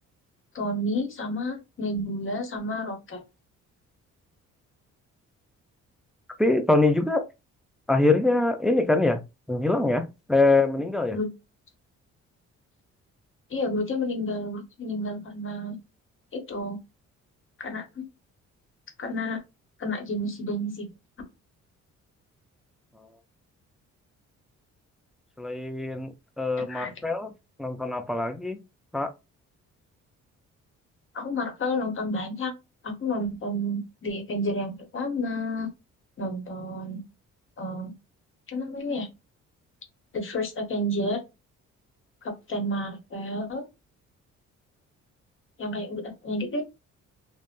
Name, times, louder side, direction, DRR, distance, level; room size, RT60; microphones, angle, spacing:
voice 1, 0.5-3.2 11.1-11.3 13.5-15.8 16.3-16.8 17.6-18.1 19.0-19.4 19.8-20.9 26.7-26.9 31.1-32.5 32.8-35.7 36.2-37.0 37.6-37.9 38.5-39.1 40.1-41.2 42.2-43.6 45.6-46.6, left 1 dB, 45° left, 1.0 m, -30 dB
voice 2, 6.4-7.2 7.9-9.2 9.5-11.2 25.4-27.3 27.6-28.6 28.9-29.1, left 2 dB, ahead, 0.3 m, -23 dB
3.1 x 2.0 x 2.5 m
cardioid pair, 90°, 30 cm